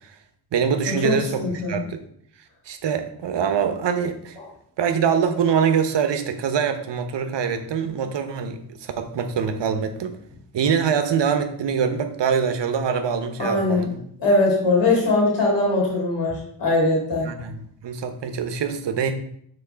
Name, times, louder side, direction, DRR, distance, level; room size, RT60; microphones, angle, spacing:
voice 1, 0.5-2.0 2.7-4.4 4.8-10.2 10.5-14.0 17.2-19.1, right 7 dB, 80° right, 8 dB, 0.9 m, -24 dB
voice 2, 1.4-1.8 4.4-4.5 13.4-13.8 14.2-17.3, left 2 dB, 80° left, -3 dB, 2.2 m, -21 dB
5.6 x 3.8 x 5.0 m, 0.66 s
wide cardioid pair, 90°, 42 cm